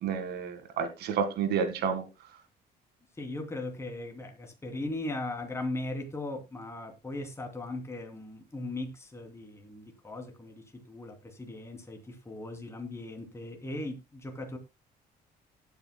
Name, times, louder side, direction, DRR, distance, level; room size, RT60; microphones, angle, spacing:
voice 1, 0.0-2.0, right 6 dB, 75° right, 1.9 m, -30 dB
voice 2, 3.2-14.6, left 2 dB, 15° left, 2.8 m, -38 dB
18.5 x 8.4 x 2.2 m
cardioid pair, 110°, 17 cm